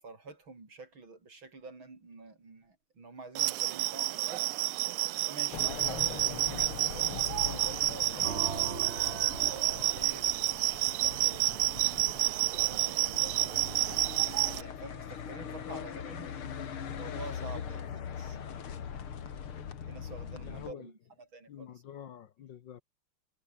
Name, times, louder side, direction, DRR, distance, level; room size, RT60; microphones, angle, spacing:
voice 1, 0.0-4.5 5.2-8.9 9.5-11.9 12.2-16.3 16.9-17.8 18.2-18.5 19.9-21.0 21.3-21.7, right 3 dB, 65° right, 5.7 m, -48 dB
sound 1, 3.4-14.6, right 18 dB, 85° right, 1.6 m, -30 dB
sound 2, 5.5-20.7, left 8 dB, 75° left, 2.8 m, -41 dB
sound 3, 8.2-12.0, right 5 dB, 35° right, 1.5 m, -42 dB
voice 2, 15.7-18.3 20.4-20.9 21.5-22.8, left 9 dB, 60° left, 1.6 m, -48 dB
omnidirectional pair, 2.4 m